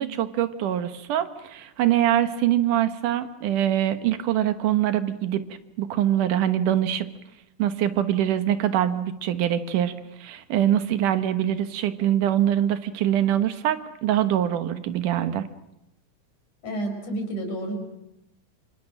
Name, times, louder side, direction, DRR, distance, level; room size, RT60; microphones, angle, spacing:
voice 1, 0.0-5.5 5.8-7.1 7.6-9.9 10.2-15.5, right 11 dB, 90° right, 10 dB, 2.8 m, -24 dB
voice 2, 16.6-17.8, right 1 dB, 75° left, 4 dB, 6.3 m, -30 dB
27.5 x 26.5 x 6.4 m, 0.85 s
omnidirectional pair, 3.6 m